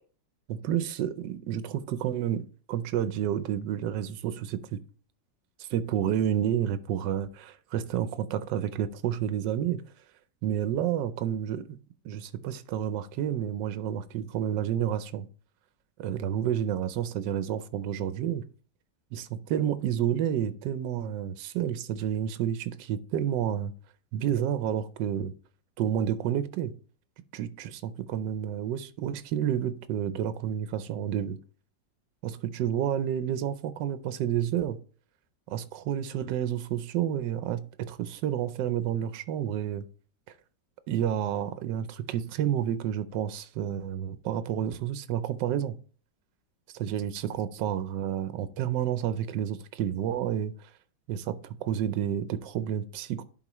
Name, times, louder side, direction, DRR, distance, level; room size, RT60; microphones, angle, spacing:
voice 1, 0.5-4.8 5.6-9.8 10.4-11.8 12.0-15.3 16.0-18.4 19.1-23.7 24.1-25.3 25.8-26.7 27.3-31.4 32.2-34.8 35.5-39.9 40.9-45.8 46.8-50.5 51.1-53.2, right 10 dB, 80° right, 1.3 m, -30 dB
11.0 x 4.4 x 3.0 m
omnidirectional pair, 1.9 m